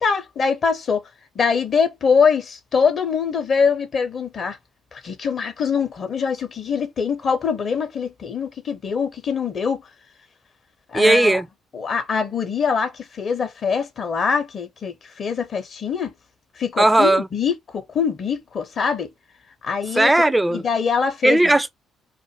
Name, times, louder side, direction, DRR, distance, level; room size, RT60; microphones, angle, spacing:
voice 1, 0.0-1.0 1.3-4.6 4.9-9.9 10.9-11.4 11.7-16.1 16.6-19.1 19.6-20.1 20.5-21.5, left 6 dB, 45° left, 0.7 m, -23 dB
voice 2, 10.9-11.5 16.8-17.3 20.0-20.6 21.2-21.7, right 2 dB, 10° right, 0.3 m, -16 dB
2.5 x 2.1 x 2.9 m
figure-of-eight pair, 45°, 0 cm